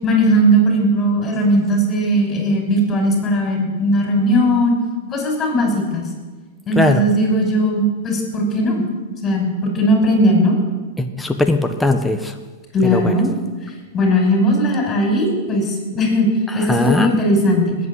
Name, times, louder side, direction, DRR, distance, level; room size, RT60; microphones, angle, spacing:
voice 1, 0.0-4.8 5.1-6.1 6.7-8.8 9.2-10.6 12.7-13.3 13.6-16.3 16.5-17.8, equal, 25° left, 1 dB, 5.8 m, -18 dB
voice 2, 11.0-12.3 12.9-13.2 16.7-17.1, left 2 dB, 5° left, 5 dB, 1.3 m, -18 dB
19.5 x 8.7 x 8.1 m, 1.3 s
hypercardioid pair, 115°, 0 cm